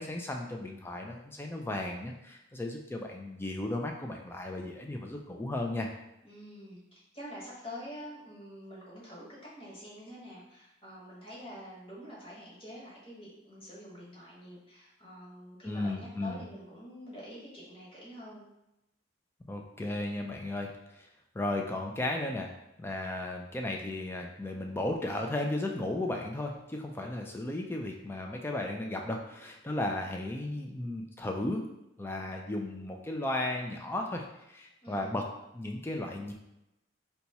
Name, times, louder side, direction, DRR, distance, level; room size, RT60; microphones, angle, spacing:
voice 1, 0.0-5.9 15.7-16.4 19.5-21.1 21.3-22.5 22.8-31.6 32.0-35.3 35.5-36.3, left 1 dB, 10° left, 2 dB, 0.3 m, -35 dB
voice 2, 6.2-18.5 34.8-35.1, equal, 30° left, -7 dB, 1.1 m, -46 dB
2.8 x 2.3 x 4.0 m, 0.89 s
head